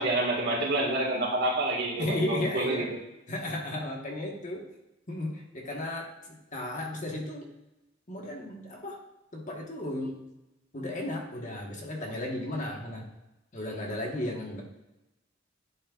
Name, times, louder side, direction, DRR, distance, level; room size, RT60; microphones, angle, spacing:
voice 1, 0.0-3.0, right 2 dB, 60° right, 0 dB, 1.8 m, -28 dB
voice 2, 1.9-2.9 3.3-4.7 5.1-7.5 8.1-9.0 9.3-10.2 10.7-13.1 13.5-14.6, left 1 dB, 40° left, 0 dB, 1.4 m, -34 dB
11.0 x 6.3 x 2.4 m, 0.97 s
head